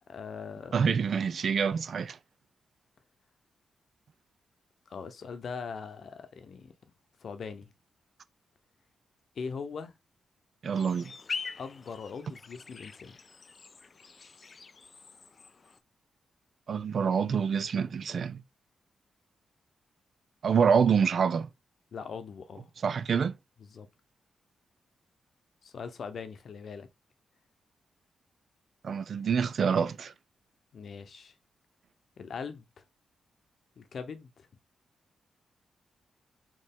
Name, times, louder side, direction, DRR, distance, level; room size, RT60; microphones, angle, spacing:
voice 1, 0.1-0.8 4.9-6.7 7.2-7.7 9.4-9.9 11.6-13.2 21.9-22.7 23.6-23.9 25.6-26.9 30.7-31.3 32.2-32.8 33.8-34.5, left 5 dB, 60° left, 0.7 m, -41 dB
voice 2, 0.7-2.2 10.6-11.1 16.7-18.4 20.4-21.5 22.8-23.3 28.8-30.1, right 6 dB, 55° right, 0.4 m, -26 dB
sound 1, 10.7-15.8, left 4 dB, 40° left, 0.3 m, -43 dB
4.4 x 3.0 x 3.5 m
wide cardioid pair, 120°, 0 cm